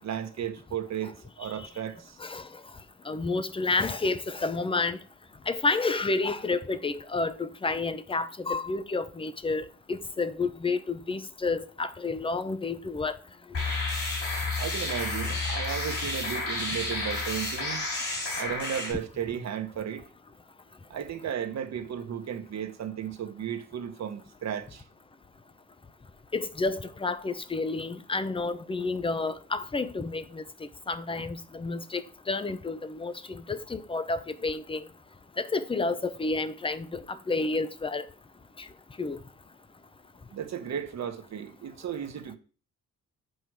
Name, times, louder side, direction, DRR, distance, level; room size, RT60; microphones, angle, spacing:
voice 1, 0.0-2.2 14.6-17.9 18.4-20.1 20.9-24.8 40.3-42.4, right 9 dB, 55° right, 1.3 m, -34 dB
voice 2, 3.1-5.0 5.5-13.1 26.3-30.4 30.9-32.0 32.3-34.8 35.4-38.0 39.0-39.2, left 3 dB, 15° left, 0.7 m, -30 dB
sound 1, 13.5-18.9, left 3 dB, 45° left, 4.2 m, -31 dB
8.1 x 5.4 x 4.7 m
cardioid pair, 130°, 32 cm